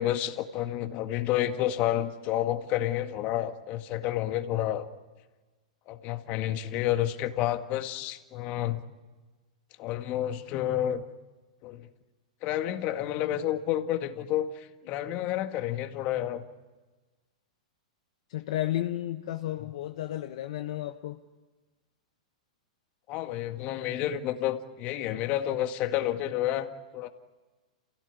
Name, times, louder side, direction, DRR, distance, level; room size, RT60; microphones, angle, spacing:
voice 1, 0.0-4.9 5.9-8.8 9.8-11.0 11.6-11.9 12.4-16.4 19.6-19.7 23.1-27.1, left 12 dB, 40° left, 1.9 m, -30 dB
voice 2, 18.3-21.2, left 13 dB, 60° left, 1.2 m, -32 dB
28.5 x 17.0 x 9.7 m
hypercardioid pair, 115°, 4 cm